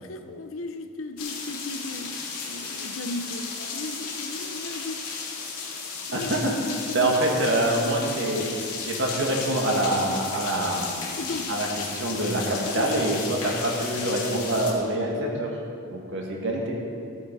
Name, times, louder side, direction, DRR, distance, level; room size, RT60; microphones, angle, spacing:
voice 1, 0.0-5.1 6.1-7.1 11.2-11.5 12.8-13.1, left 2 dB, 60° left, 8 dB, 0.7 m, -36 dB
sound 1, 1.2-14.7, left 5 dB, 80° left, 2.2 m, -34 dB
voice 2, 6.1-6.5 6.9-8.4 8.8-11.2 11.5-11.7 11.9-15.5 15.9-16.8, right 1 dB, 55° right, -1 dB, 2.0 m, -25 dB
14.5 x 8.9 x 4.8 m, 2.6 s
head